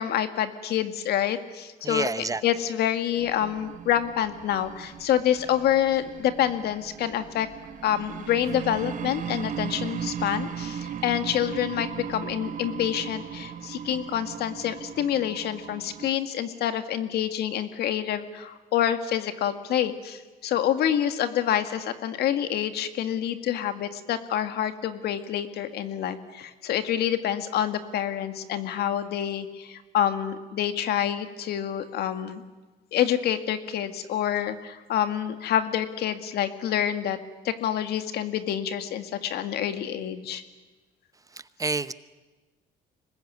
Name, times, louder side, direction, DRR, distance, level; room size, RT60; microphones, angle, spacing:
voice 1, 0.0-2.1 2.4-7.5 7.8-32.4 32.9-37.2 37.4-40.4, left 10 dB, 70° left, 9 dB, 2.0 m, -27 dB
voice 2, 1.8-2.4 41.3-41.9, right 3 dB, 20° right, 14 dB, 0.8 m, -29 dB
sound 1, 3.2-16.1, right 8 dB, 50° right, 1.5 m, -37 dB
25.5 x 20.5 x 9.5 m, 1.3 s
cardioid pair, 110°, 17 cm